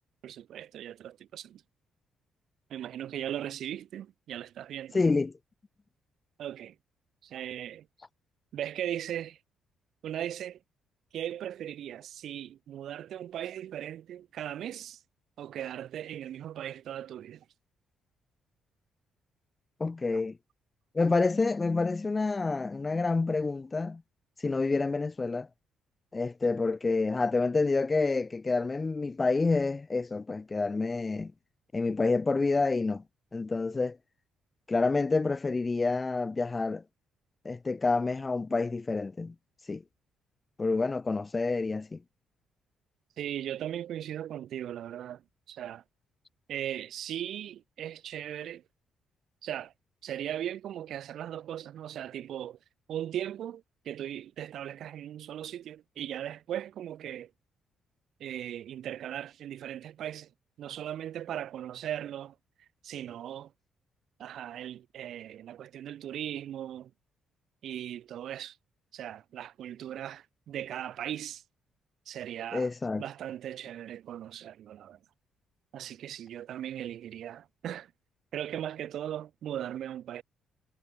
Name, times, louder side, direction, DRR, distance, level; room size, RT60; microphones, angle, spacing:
voice 1, 0.2-1.6 2.7-5.0 6.4-6.7 7.2-7.9 8.5-9.4 10.0-10.6 11.1-15.0 15.4-17.4 43.2-45.2 45.5-45.8 46.5-48.6 49.4-49.7 50.0-52.6 52.9-57.3 58.2-60.3 60.6-62.3 62.8-63.5 64.2-66.9 67.6-68.6 68.9-71.4 72.1-72.7 73.0-75.0 75.7-77.9 78.3-80.2, right 11 dB, 70° right, 1.3 m, -38 dB
voice 2, 4.9-5.3 19.8-20.4 20.9-24.0 24.4-25.5 26.1-31.3 31.7-33.0 33.3-34.0 34.7-36.8 37.4-39.3 39.7-39.8 40.6-42.0 72.5-73.0, left 3 dB, 25° left, 0.4 m, -28 dB
cardioid pair, 90°, 0 cm